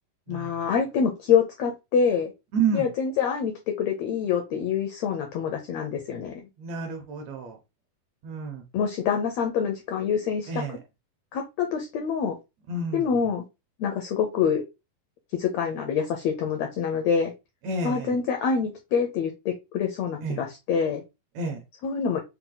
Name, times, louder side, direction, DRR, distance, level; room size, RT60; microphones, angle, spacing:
voice 1, 0.3-2.3 2.7-6.4 8.7-10.6 11.3-12.4 12.9-13.4 13.8-14.6 15.3-17.3 17.8-21.0 21.8-22.2, left 6 dB, 80° left, 4 dB, 1.5 m, -26 dB
voice 2, 2.5-2.9 6.6-7.6 8.2-8.6 10.5-10.8 12.7-13.1 17.6-18.2 20.2-20.4 21.4-21.6, right 4 dB, 70° right, 4 dB, 1.8 m, -29 dB
5.6 x 2.2 x 3.9 m, 0.24 s
omnidirectional pair, 3.8 m